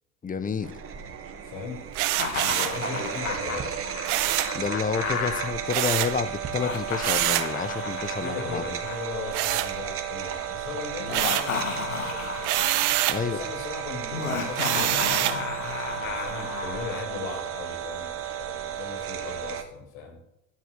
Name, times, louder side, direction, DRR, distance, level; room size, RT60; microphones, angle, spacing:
voice 1, 0.2-0.7 4.5-8.6 13.1-13.4, left 6 dB, 20° left, 13 dB, 1.4 m, -29 dB
sound 1, 0.6-19.6, right 9 dB, 35° right, 2.2 m, -34 dB
voice 2, 1.4-1.8 2.4-3.7 7.8-12.5 13.2-15.3 16.0-20.2, left 5 dB, 55° left, 2 dB, 7.3 m, -38 dB
sound 2, 1.9-2.8 4.1-4.6 5.7-6.2 7.0-7.5 9.3-10.2 10.6-11.6 12.4-13.3 14.6-15.4, right 15 dB, 50° right, 1.3 m, -26 dB
Laughter, 2.1-5.5 6.4-9.8 11.0-13.0 14.1-17.1, left 5 dB, 80° left, 3.2 m, -33 dB
13.5 x 11.5 x 6.6 m, 0.82 s
hypercardioid pair, 85°, 39 cm